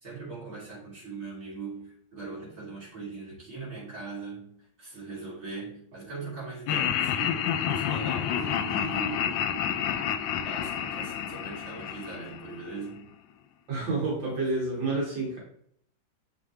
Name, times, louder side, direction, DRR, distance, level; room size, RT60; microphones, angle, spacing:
voice 1, 0.0-13.1, right 3 dB, 35° right, -5 dB, 3.2 m, -40 dB
Laughter, 6.7-12.9, left 9 dB, 85° left, 1.4 m, -29 dB
voice 2, 13.7-15.4, right 3 dB, 75° right, -3 dB, 2.6 m, -29 dB
7.2 x 6.2 x 3.2 m, 0.65 s
omnidirectional pair, 2.1 m